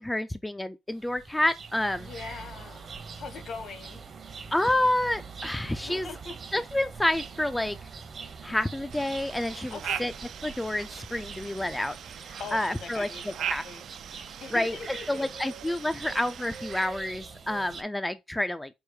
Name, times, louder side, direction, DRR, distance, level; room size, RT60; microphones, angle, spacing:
voice 1, 0.0-2.1 4.5-6.1 6.5-7.8 8.4-10.1 10.4-13.1 13.5-13.6 14.5-14.8 15.1-18.7, left 1 dB, 10° left, 0.3 m, -29 dB
sound 1, 0.9-17.8, right 5 dB, 45° right, 0.8 m, -44 dB
voice 2, 2.0-2.9 3.2-4.0 5.8-6.3 9.7-10.1 12.4-13.9 14.4-15.3, left 4 dB, 60° left, 1.2 m, -41 dB
sound 2, 8.9-16.9, right 10 dB, 70° right, 0.4 m, -40 dB
4.8 x 2.0 x 4.6 m
cardioid pair, 90°, 0 cm